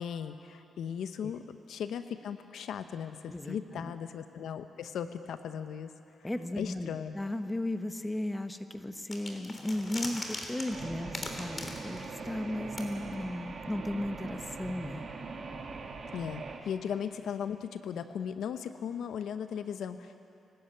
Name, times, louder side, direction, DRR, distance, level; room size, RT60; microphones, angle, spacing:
voice 1, 0.0-5.9 6.6-7.1 16.1-20.2, left 8 dB, 75° left, 10 dB, 0.7 m, -37 dB
voice 2, 3.3-3.9 6.2-15.1, left 1 dB, 15° left, 8 dB, 1.2 m, -35 dB
sound 1, 9.1-12.5 12.8-12.9, left 2 dB, 35° left, 3.3 m, -40 dB
sound 2, 10.7-16.6, right 4 dB, 55° right, 2.2 m, -42 dB
22.5 x 12.5 x 9.1 m, 2.7 s
cardioid pair, 65°, 0 cm